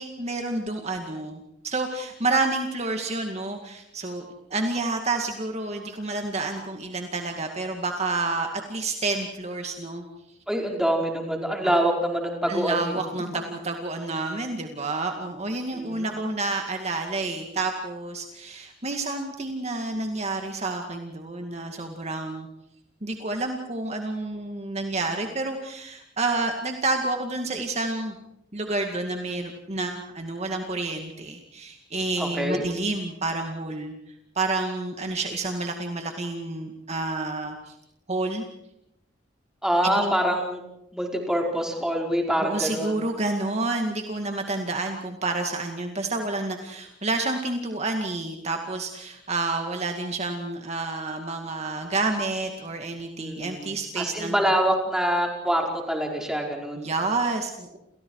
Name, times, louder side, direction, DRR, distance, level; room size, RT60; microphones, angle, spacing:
voice 1, 0.0-4.3 4.5-10.0 11.6-11.8 12.5-22.5 23.0-28.1 28.5-33.9 34.4-37.7 38.1-38.5 39.8-40.1 42.4-54.3 56.8-57.8, right 2 dB, 35° right, 4 dB, 2.2 m, -29 dB
voice 2, 10.5-13.0 15.7-16.3 32.2-32.6 39.6-40.6 40.9-42.9 53.2-53.7 54.0-56.9, equal, 5° right, 0 dB, 5.1 m, -25 dB
29.5 x 29.5 x 4.9 m, 0.84 s
head